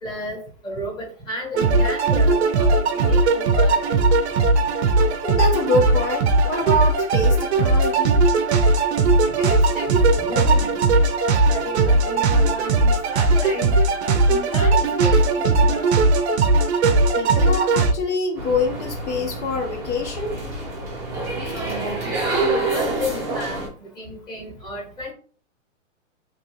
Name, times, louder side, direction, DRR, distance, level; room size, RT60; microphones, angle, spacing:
voice 1, 0.0-3.8 9.4-10.7 11.2-13.7 14.3-16.0 21.5-25.1, left 1 dB, 10° left, -4 dB, 1.1 m, -32 dB
sound 1, 1.5-17.9, right 3 dB, 60° right, 0.5 m, -18 dB
voice 2, 5.2-8.2 17.2-20.4, left 2 dB, 60° left, 3 dB, 0.9 m, -25 dB
sound 2, 18.4-23.7, right 2 dB, 10° right, 0.5 m, -27 dB
3.0 x 2.6 x 3.0 m, 0.41 s
hypercardioid pair, 150°, 38 cm